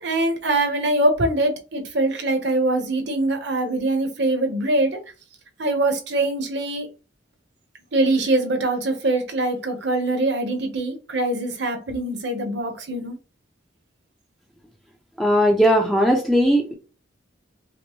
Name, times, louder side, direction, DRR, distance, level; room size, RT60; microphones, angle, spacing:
voice 1, 0.0-5.0 5.6-6.9 7.9-13.2, right 2 dB, 60° right, 0.9 m, -23 dB
voice 2, 15.2-16.7, equal, ahead, 0.5 m, -18 dB
5.0 x 2.1 x 3.0 m
head